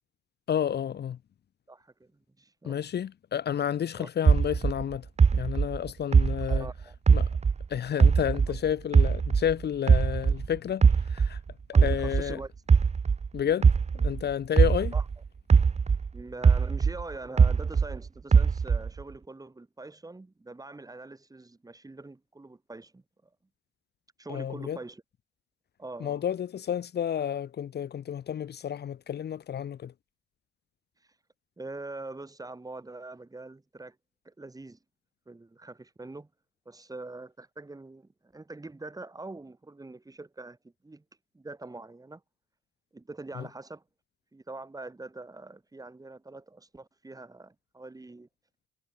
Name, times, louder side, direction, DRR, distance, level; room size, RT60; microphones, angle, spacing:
voice 1, 0.5-1.2 2.6-5.0 5.3-6.7 7.1-7.3 7.7-11.4 11.8-12.4 13.3-13.7 13.9-14.9 24.3-24.8 26.0-29.9 43.4-43.5, left 9 dB, 55° left, 1.6 m, -30 dB
voice 2, 1.7-2.1 2.4-2.8 3.9-4.1 6.5-6.9 8.5-8.6 11.7-12.5 13.4-13.7 14.9-15.1 16.1-23.0 24.2-25.0 25.8-26.2 31.6-34.0 34.2-34.8 35.3-36.3 36.7-41.0 41.3-42.2 42.9-43.8 44.3-48.3, right 2 dB, 20° right, 7.8 m, -43 dB
sound 1, 4.2-7.6 8.0-10.5 10.8-15.1 15.5-18.0 18.3-19.0, right 5 dB, 35° right, 1.4 m, -21 dB
cardioid pair, 90°, 20 cm